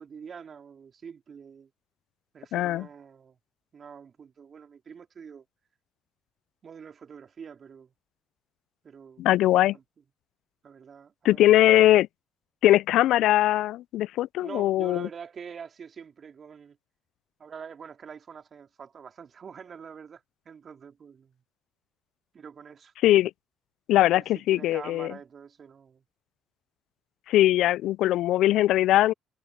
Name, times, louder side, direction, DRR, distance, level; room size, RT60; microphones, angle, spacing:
voice 1, 0.0-1.7 2.3-3.4 3.7-5.4 6.6-7.9 8.8-9.3 9.7-9.8 10.6-11.4 14.4-16.8 17.4-21.4 22.3-22.9 24.1-26.0, right 6 dB, 50° right, 3.9 m, -45 dB
voice 2, 2.5-2.9 9.2-9.8 11.2-12.1 12.6-15.1 23.0-23.3 23.9-25.1 27.3-29.1, left 14 dB, 70° left, 0.4 m, -21 dB
hypercardioid pair, 55°, 0 cm